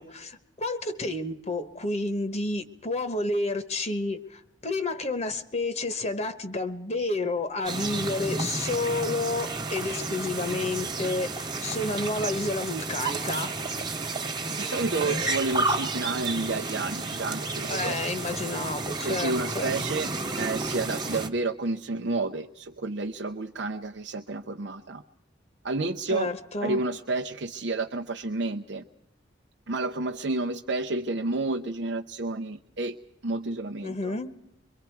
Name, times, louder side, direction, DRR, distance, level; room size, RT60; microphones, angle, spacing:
voice 1, 0.0-13.5 17.7-19.7 26.1-26.8 33.8-34.3, left 2 dB, 35° left, 9 dB, 1.1 m, -30 dB
sound 1, 7.6-21.3, right 3 dB, 20° right, 1.3 m, -31 dB
voice 2, 14.6-18.0 19.0-25.0 25.6-26.3 26.6-28.8 29.7-33.0 33.2-34.2, right 3 dB, 60° right, 3 dB, 0.7 m, -30 dB
25.5 x 23.5 x 4.6 m, 0.82 s
head